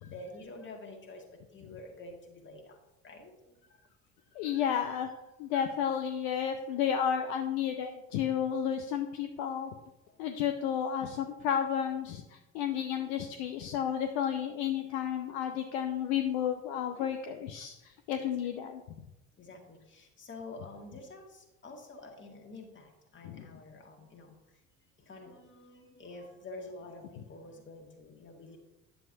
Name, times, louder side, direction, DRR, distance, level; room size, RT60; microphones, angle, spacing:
voice 1, 0.1-2.8 3.0-3.6 10.1-10.3 18.2-18.3 19.4-24.4 25.0-28.6, left 2 dB, 30° left, 2 dB, 1.8 m, -48 dB
voice 2, 4.3-5.1 5.4-9.7 10.2-18.8 23.2-23.5, left 8 dB, 55° left, 6 dB, 0.7 m, -32 dB
10.0 x 7.0 x 2.7 m, 0.97 s
figure-of-eight pair, 60°, 40 cm